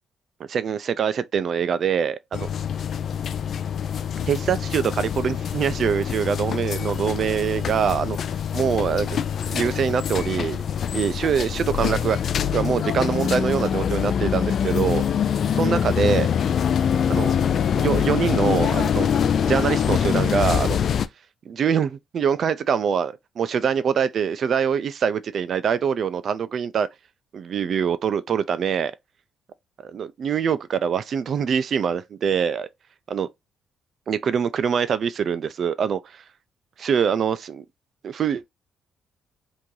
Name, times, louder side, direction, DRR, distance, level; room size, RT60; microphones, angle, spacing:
voice 1, 0.5-2.5 4.3-8.2 8.5-9.2 9.5-10.6 10.9-12.2 12.5-15.1 15.5-16.3 17.1-17.3 17.7-19.1 19.5-20.8 21.5-26.9 27.3-28.9 29.9-32.7 33.1-33.3 34.1-36.2 36.8-37.6 38.0-38.5, right 7 dB, 55° right, 0.4 m, -24 dB
sound 1, 2.3-21.1, left 8 dB, 60° left, 0.3 m, -24 dB
3.0 x 2.6 x 3.7 m
cardioid pair, 90°, 0 cm